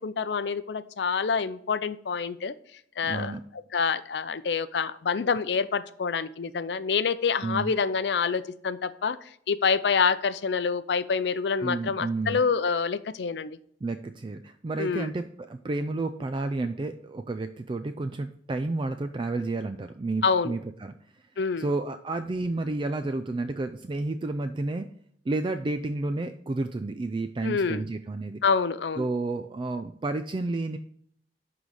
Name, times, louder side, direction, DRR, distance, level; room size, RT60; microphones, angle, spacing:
voice 1, 0.0-2.5 3.0-3.3 3.7-9.2 9.5-13.6 14.8-15.1 20.2-20.6 21.4-21.7 27.4-27.8 28.4-29.1, left 5 dB, 70° left, 14 dB, 0.5 m, -27 dB
voice 2, 3.0-3.4 7.4-7.7 11.6-12.4 13.8-20.9 21.6-24.9 25.3-28.4 29.0-30.8, right 2 dB, 30° right, 9 dB, 0.3 m, -31 dB
11.0 x 3.9 x 4.8 m, 0.65 s
head